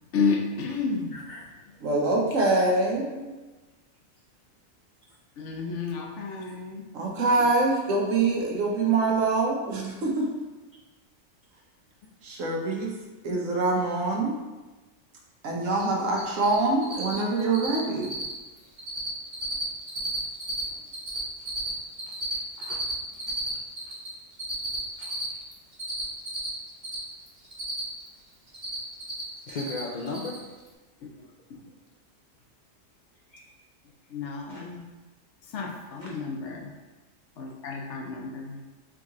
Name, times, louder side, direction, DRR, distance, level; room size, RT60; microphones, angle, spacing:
voice 1, 0.1-1.1 1.9-2.6 3.1-3.3 5.4-6.8 7.7-7.8 31.0-31.1 31.5-31.6 34.1-34.8 35.5-36.7 37.4-38.6, left 5 dB, 70° left, 1 dB, 0.9 m, -31 dB
voice 2, 1.1-1.4 15.6-15.8 22.3-22.8 23.1-23.2 25.0-25.4 29.5-30.4 33.3-33.5 34.5-34.6 36.0-36.1, left 3 dB, 90° left, -2 dB, 0.4 m, -37 dB
voice 3, 1.8-3.1 6.9-10.4 12.2-12.9 13.2-14.3 15.4-18.1, right 3 dB, 75° right, -1 dB, 1.2 m, -25 dB
Cricket, 15.7-16.5 16.8-17.1 17.4-17.8 18.0-18.3 18.6-19.1 19.3-20.6 20.9-24.1 24.4-27.0 27.3-28.1 28.3-29.2 29.5-29.8 30.1-30.4, right 1 dB, 45° right, 1.4 m, -33 dB
3.6 x 3.1 x 3.6 m, 1.2 s
omnidirectional pair, 1.3 m